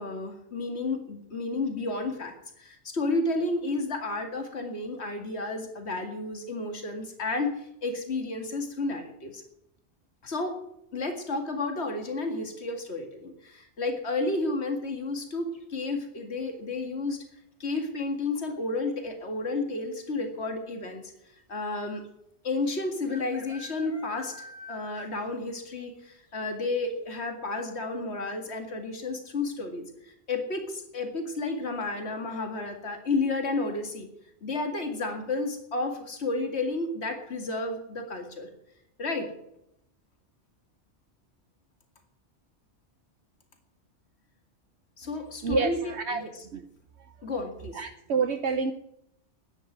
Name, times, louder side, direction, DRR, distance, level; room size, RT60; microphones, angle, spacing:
voice 1, 0.0-9.4 10.2-10.6 10.9-17.2 17.6-21.1 21.5-22.0 22.4-34.1 34.4-38.5 39.0-39.3 45.0-46.4 47.2-47.8, left 3 dB, 65° left, 5 dB, 2.4 m, -32 dB
sound 1, 15.5-16.0 17.8-18.2 18.5-18.6 18.8-19.3 20.1-20.2 20.4-20.5 22.0-22.1 23.1-25.4 25.7-25.8 26.3-26.4 26.9-27.0, left 2 dB, 30° left, 2.3 m, -47 dB
voice 2, 45.4-46.2 46.5-46.6 47.8-48.7, right 5 dB, 70° right, 8 dB, 1.1 m, -28 dB
10.5 x 10.0 x 9.2 m, 0.78 s
omnidirectional pair, 1.2 m